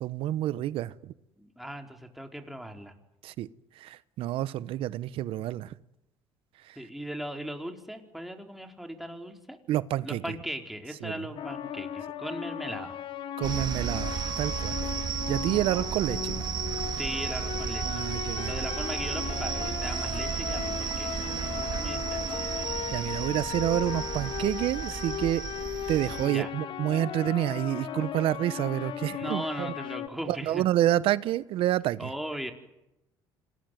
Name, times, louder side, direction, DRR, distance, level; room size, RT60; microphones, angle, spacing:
voice 1, 0.0-0.9 3.2-3.5 3.8-5.7 9.7-10.2 11.0-11.1 13.4-14.8 15.3-16.4 17.8-18.5 21.2-21.3 22.9-25.4 25.9-29.7 30.3-32.1, right 13 dB, 70° right, 17 dB, 0.9 m, -28 dB
voice 2, 1.4-2.9 6.8-9.6 10.0-12.9 15.7-16.0 17.0-17.8 18.5-22.5 26.2-26.5 29.1-30.6 32.0-32.5, equal, ahead, 3 dB, 4.6 m, -38 dB
sound 1, 11.4-30.1, left 9 dB, 60° left, 1.9 m, -37 dB
sound 2, 13.4-26.3, right 7 dB, 50° right, 2.2 m, -33 dB
26.5 x 20.0 x 9.4 m, 0.89 s
supercardioid pair, 80°, 10 cm